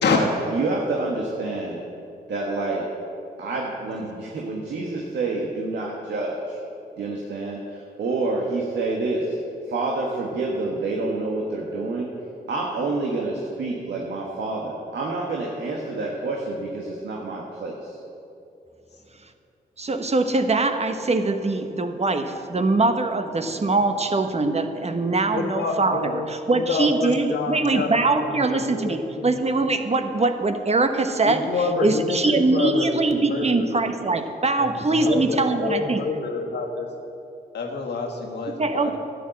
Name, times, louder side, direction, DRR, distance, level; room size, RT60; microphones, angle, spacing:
voice 1, 0.1-1.8 2.3-2.9 3.4-6.6 7.0-9.4 9.7-12.1 12.5-18.0, right 3 dB, 85° right, -2 dB, 1.4 m, -28 dB
voice 2, 19.8-31.5 31.7-36.0 38.6-39.0, right 3 dB, 40° right, 7 dB, 1.1 m, -22 dB
voice 3, 25.3-27.9 28.2-29.3 31.2-33.8 34.6-34.7 35.0-36.9 37.5-39.0, left 4 dB, 80° left, 1 dB, 1.7 m, -28 dB
12.0 x 8.5 x 7.6 m, 2.7 s
cardioid pair, 55°, 17 cm